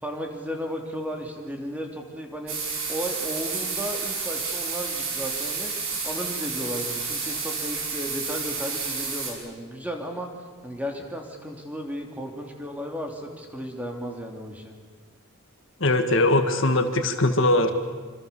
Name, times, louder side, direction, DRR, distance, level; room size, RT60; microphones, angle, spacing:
voice 1, 0.0-14.7, equal, 5° right, 2 dB, 3.0 m, -34 dB
sound 1, 2.5-9.3, right 4 dB, 80° right, 6.8 m, -30 dB
voice 2, 15.8-17.7, left 2 dB, 60° left, 7 dB, 1.9 m, -21 dB
26.5 x 26.0 x 7.0 m, 1.5 s
head